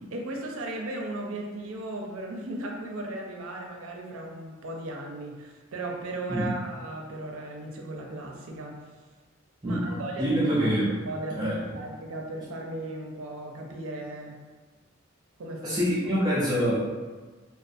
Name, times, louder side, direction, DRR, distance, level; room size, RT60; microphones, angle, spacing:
voice 1, 0.0-8.8 9.6-10.7 11.1-14.4 15.4-15.8 16.2-16.3, right 2 dB, 85° right, 1 dB, 0.5 m, -36 dB
voice 2, 9.6-10.9 11.3-11.6 15.6-16.8, equal, 20° right, -9 dB, 0.4 m, -26 dB
2.4 x 2.3 x 2.5 m, 1.3 s
head